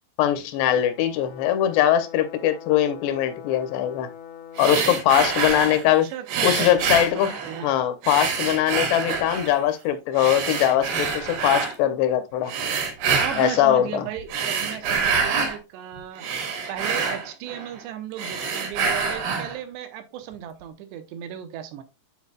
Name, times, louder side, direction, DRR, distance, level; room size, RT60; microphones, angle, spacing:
voice 1, 0.2-4.1 4.6-6.1 6.4-7.4 7.6-12.5 13.4-14.1, left 11 dB, 90° left, 2.8 m, -21 dB
Brass instrument, 0.6-4.9, left 8 dB, 70° left, 1.4 m, -43 dB
sound 1, 4.6-5.9 6.3-7.7 8.0-9.6 10.2-11.8 12.5-13.6 14.2-15.6 16.0-17.8 18.1-19.6, right 5 dB, 65° right, 2.8 m, -26 dB
voice 2, 4.7-5.6 6.0-6.9 7.2-7.7 13.2-16.2 16.7-21.8, right 10 dB, 90° right, 2.9 m, -35 dB
10.5 x 4.1 x 2.2 m
omnidirectional pair, 4.9 m